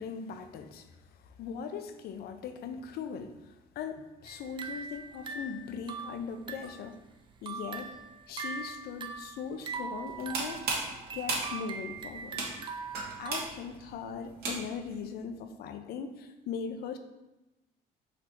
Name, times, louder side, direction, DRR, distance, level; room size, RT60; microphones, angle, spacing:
voice 1, 0.0-7.0 7.4-12.4 13.2-17.0, left 6 dB, 65° left, 8 dB, 0.5 m, -40 dB
sound 1, 4.3-6.9 7.3-13.4, right 5 dB, 30° right, 0.4 m, -41 dB
sound 2, 10.1-14.9, right 3 dB, 70° right, 1.1 m, -36 dB
4.1 x 2.8 x 4.4 m, 1.0 s
cardioid pair, 110°, 17 cm